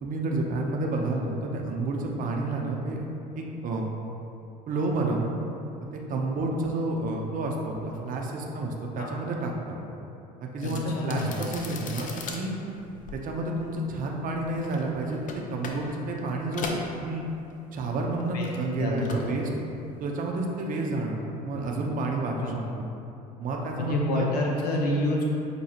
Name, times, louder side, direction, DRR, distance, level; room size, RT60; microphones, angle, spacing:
voice 1, 0.0-3.1 3.4-3.9 4.7-5.3 5.9-9.8 10.4-12.5 13.1-15.2 15.5-16.7 17.0-17.2 17.7-19.5 20.0-22.9 23.4-24.3, right 2 dB, 45° right, 0 dB, 0.7 m, -30 dB
voice 2, 10.6-11.4 18.3-19.3 22.4-22.6 23.8-25.3, left 1 dB, 90° left, -1 dB, 0.6 m, -28 dB
sound 1, 10.6-17.8 18.1-19.4 19.7-20.0, left 4 dB, 45° left, 0.5 m, -40 dB
6.6 x 2.3 x 2.9 m, 2.8 s
hypercardioid pair, 70°, 20 cm